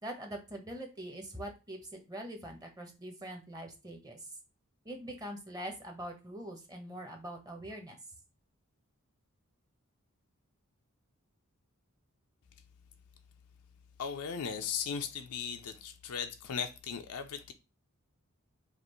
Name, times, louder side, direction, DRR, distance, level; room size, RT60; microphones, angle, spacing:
voice 1, 0.0-4.2 4.8-8.0, right 1 dB, 15° right, 0.9 m, -43 dB
voice 2, 14.0-17.5, left 7 dB, 90° left, 0.5 m, -37 dB
5.1 x 2.5 x 3.1 m
head